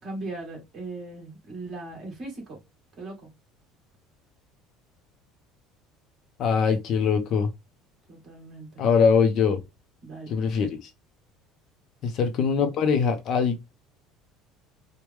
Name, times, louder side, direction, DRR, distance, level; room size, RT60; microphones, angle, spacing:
voice 1, 0.0-2.6 3.0-3.1 8.1-8.8 10.0-10.3, right 2 dB, 30° right, 1.8 m, -38 dB
voice 2, 6.4-7.5 8.8-9.6 10.3-10.9 12.0-13.7, left 6 dB, 40° left, 0.5 m, -22 dB
4.5 x 2.1 x 3.4 m
cardioid pair, 155°, 0 cm